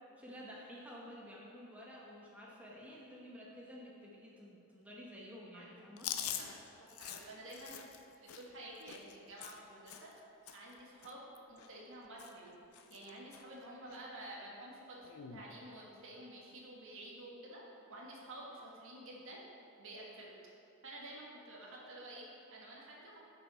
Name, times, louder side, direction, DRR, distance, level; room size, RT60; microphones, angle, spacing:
voice 1, 0.2-6.1, equal, 5° right, -5 dB, 1.0 m, -51 dB
voice 2, 5.5-5.9 6.4-7.8 8.2-10.1 10.5-17.6 17.9-19.4 19.8-20.4 20.8-23.2, right 1 dB, 65° right, -3 dB, 1.6 m, -51 dB
Chewing mastication, 6.0-10.2 10.5-10.7 11.0-11.9 12.2-12.5 12.7-13.4 13.9-14.0 15.0-15.4, left 9 dB, 80° left, 0.5 m, -45 dB
10.0 x 5.6 x 4.2 m, 2.7 s
head